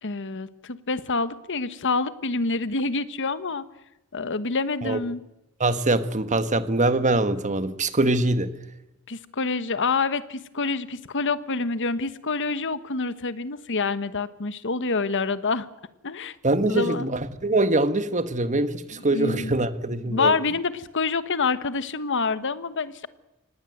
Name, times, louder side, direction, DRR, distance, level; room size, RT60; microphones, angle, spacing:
voice 1, 0.0-3.7 4.1-5.2 9.1-15.7 16.0-16.4 16.7-17.1 18.9-19.5 20.1-23.1, left 4 dB, 60° left, 14 dB, 1.3 m, -27 dB
voice 2, 5.6-8.5 16.4-20.3, right 2 dB, 35° right, 11 dB, 1.5 m, -23 dB
25.5 x 19.5 x 7.9 m, 0.92 s
head